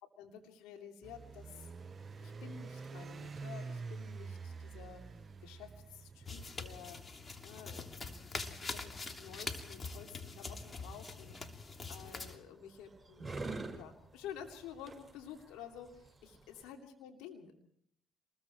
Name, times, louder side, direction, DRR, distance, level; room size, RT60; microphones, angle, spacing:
voice 1, 0.2-1.7 2.2-5.0 5.4-7.0 7.4-11.4 11.9-13.4 13.7-17.5, left 8 dB, 80° left, 3 dB, 2.9 m, -51 dB
sound 1, 1.0-6.5, right 4 dB, 45° right, 0.8 m, -46 dB
sound 2, 6.2-12.4, left 3 dB, 35° left, 3.0 m, -44 dB
sound 3, 10.6-16.7, right 3 dB, 15° right, 6.1 m, -48 dB
27.0 x 21.0 x 4.6 m, 0.67 s
hypercardioid pair, 50°, 0 cm